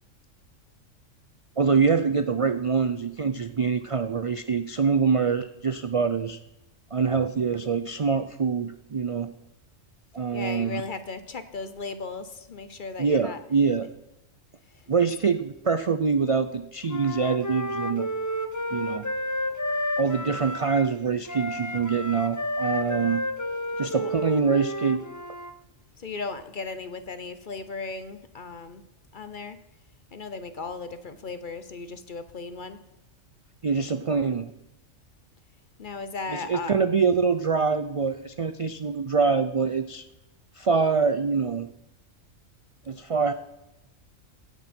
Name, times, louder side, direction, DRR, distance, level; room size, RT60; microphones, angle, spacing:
voice 1, 1.6-6.4 6.9-9.3 10.1-10.8 13.0-13.9 14.9-18.1 18.7-19.1 20.0-23.2 23.8-25.0 33.6-34.5 36.3-40.0 40.6-41.7 42.9-43.3, right 5 dB, 55° right, 10 dB, 0.3 m, -25 dB
voice 2, 10.3-13.4 14.8-15.1 23.9-24.1 26.0-28.8 29.1-29.6 30.1-32.8 35.8-36.8, left 4 dB, 45° left, 11 dB, 0.9 m, -36 dB
Wind instrument woodwind instrument, 16.9-20.9 21.2-25.5, left 1 dB, 20° left, 0.6 m, -31 dB
16.5 x 9.7 x 4.4 m, 0.91 s
omnidirectional pair, 1.3 m